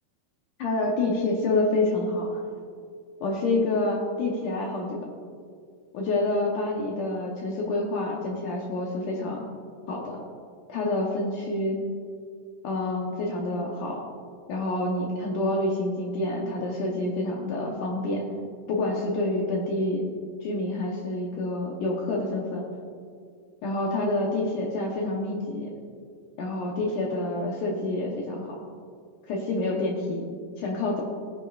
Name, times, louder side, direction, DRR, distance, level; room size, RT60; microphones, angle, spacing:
voice 1, 0.6-2.4 3.2-5.1 5.9-9.4 9.9-10.2 10.7-11.8 12.6-14.0 14.5-18.3 18.7-20.1 20.4-22.6 23.6-25.7 26.4-28.6 29.3-30.3 30.6-31.0, left 2 dB, 70° left, -1 dB, 2.0 m, -27 dB
18.0 x 9.6 x 2.4 m, 2.2 s
omnidirectional pair, 4.8 m